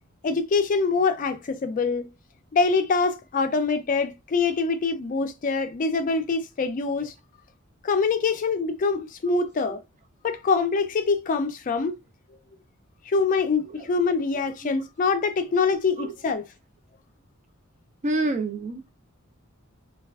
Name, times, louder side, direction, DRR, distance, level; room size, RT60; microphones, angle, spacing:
voice 1, 0.2-2.1 2.5-7.1 7.8-9.8 10.2-12.0 13.1-16.4, left 4 dB, 40° left, 0.4 m, -24 dB
voice 2, 18.0-18.9, right 2 dB, 35° right, 0.4 m, -27 dB
3.2 x 2.3 x 2.3 m
head